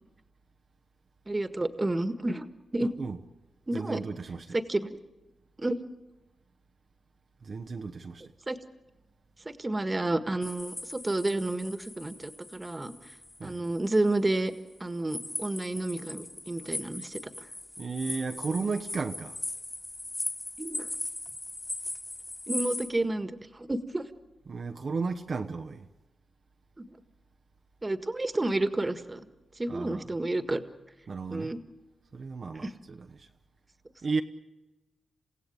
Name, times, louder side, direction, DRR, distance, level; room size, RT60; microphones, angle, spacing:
voice 1, 1.3-2.5 2.7-2.9 3.7-4.0 4.5-4.9 5.6-5.8 8.5-8.6 9.4-12.9 13.4-14.5 14.8-17.2 20.6-20.9 22.5-24.1 26.8-26.9 27.8-29.2 29.6-30.6 31.3-31.6 32.6-32.7, right 2 dB, 25° right, 1.7 m, -30 dB
voice 2, 3.7-4.6 7.4-8.3 13.4-13.7 17.8-19.4 24.5-25.9 29.7-30.1 31.1-31.5 32.1-33.3 34.0-34.2, right 4 dB, 55° right, 1.0 m, -34 dB
sound 1, 10.4-14.1 15.1-22.9, left 2 dB, 25° left, 2.2 m, -39 dB
29.0 x 16.0 x 8.8 m
cardioid pair, 60°, 0 cm